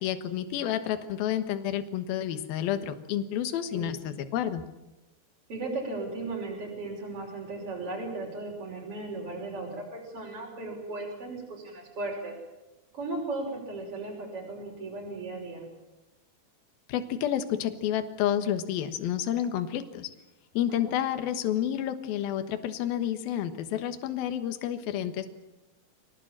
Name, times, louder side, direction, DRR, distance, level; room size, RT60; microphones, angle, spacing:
voice 1, 0.0-4.6 16.9-20.1 20.5-25.3, left 10 dB, 65° left, 8 dB, 3.0 m, -30 dB
voice 2, 5.5-12.3 12.9-15.7 20.7-21.0, right 2 dB, 35° right, -2 dB, 6.2 m, -36 dB
25.5 x 18.5 x 8.9 m, 1.0 s
omnidirectional pair, 4.8 m